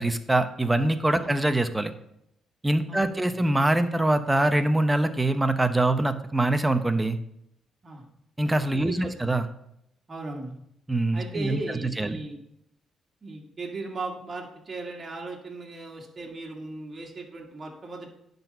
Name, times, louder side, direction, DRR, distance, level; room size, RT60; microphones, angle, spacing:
voice 1, 0.0-1.9 2.6-7.2 8.4-9.5 10.9-12.2, right 1 dB, 10° right, 9 dB, 0.8 m, -24 dB
voice 2, 2.9-3.5 7.8-8.0 8.7-9.3 10.1-10.6 11.1-12.4 13.2-18.1, right 3 dB, 35° right, 0 dB, 2.0 m, -37 dB
10.0 x 4.1 x 5.5 m, 0.76 s
cardioid pair, 90°, 0 cm